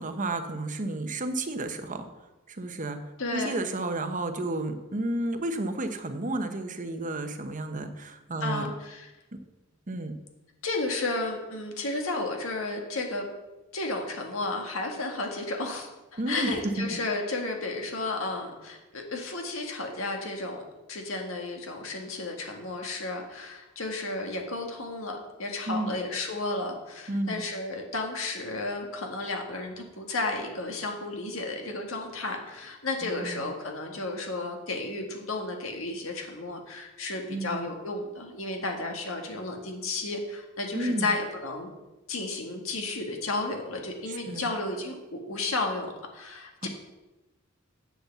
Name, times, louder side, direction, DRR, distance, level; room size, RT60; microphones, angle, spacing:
voice 1, 0.0-2.1 2.5-3.0 3.3-8.7 9.9-10.1 16.2-16.7 25.7-26.0 27.1-27.4 33.0-33.5 37.3-37.7 40.7-41.1 44.1-44.5 46.6-46.7, right 2 dB, 40° right, 7 dB, 1.0 m, -32 dB
voice 2, 3.2-3.6 8.4-9.1 10.6-13.3 13.7-41.7 42.1-46.7, left 2 dB, 75° left, 2 dB, 1.8 m, -33 dB
8.1 x 7.7 x 7.0 m, 1.0 s
head